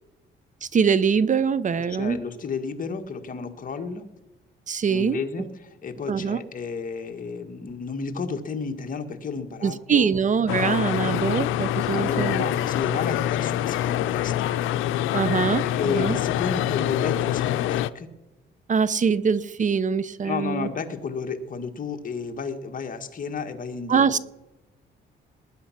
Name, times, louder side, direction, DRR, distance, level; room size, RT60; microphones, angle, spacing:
voice 1, 0.6-2.2 4.7-5.2 6.1-6.4 9.6-12.5 15.1-16.2 18.7-20.7 23.9-24.2, right 6 dB, 40° right, 18 dB, 0.7 m, -23 dB
voice 2, 1.8-4.1 4.9-10.1 11.8-14.5 15.6-18.1 20.2-24.0, left 5 dB, 45° left, 5 dB, 1.8 m, -32 dB
sound 1, 10.5-17.9, left 12 dB, 90° left, 0.6 m, -25 dB
19.5 x 9.3 x 5.9 m, 1.0 s
cardioid pair, 90°, 20 cm